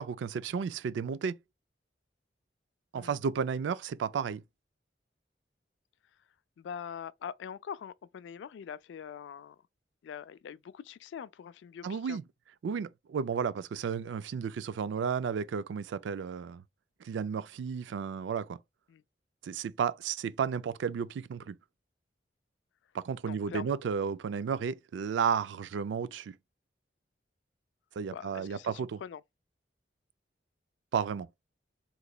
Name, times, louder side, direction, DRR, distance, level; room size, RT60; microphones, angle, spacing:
voice 1, 0.0-1.4 2.9-4.4 11.8-12.2 12.6-16.6 17.0-18.6 19.4-21.5 22.9-26.4 28.0-29.0 30.9-31.3, right 6 dB, 85° right, 0.3 m, -33 dB
voice 2, 6.6-9.6 10.0-12.2 18.9-19.0 23.2-23.7 28.1-29.2, left 8 dB, 80° left, 0.3 m, -43 dB
3.8 x 3.0 x 2.2 m
head